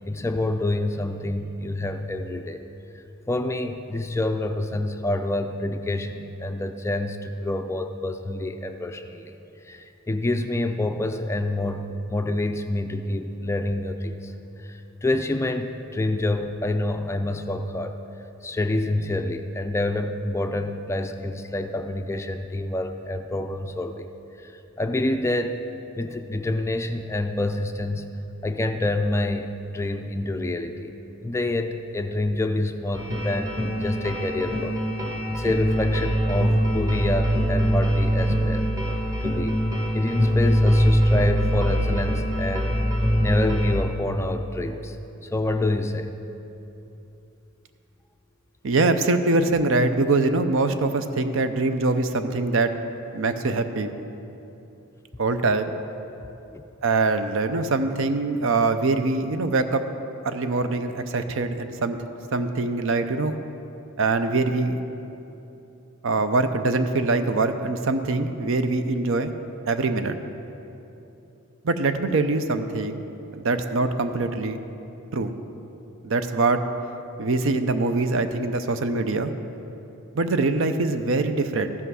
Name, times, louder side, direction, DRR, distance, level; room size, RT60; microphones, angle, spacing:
voice 1, 0.1-2.6 3.3-9.3 9.7-14.3 14.7-17.9 18.4-24.1 24.4-24.5 24.8-25.6 25.9-28.1 28.4-30.9 31.2-34.8 35.3-38.7 39.2-39.6 39.9-42.7 43.2-45.0 45.3-46.1 53.0-53.1 56.5-56.6, left 2 dB, 15° left, 6 dB, 0.3 m, -27 dB
sound 1, 32.9-43.7, equal, 15° right, 1.3 m, -23 dB
voice 2, 48.6-52.7 53.1-53.9 55.2-55.7 56.8-59.8 60.2-62.0 62.3-63.4 64.0-64.8 66.0-69.3 69.7-70.2 71.6-73.0 73.3-74.6 75.1-75.3 76.0-76.6 77.2-79.3 80.1-81.8, right 3 dB, 65° right, 9 dB, 0.6 m, -23 dB
13.5 x 5.7 x 6.2 m, 2.9 s
head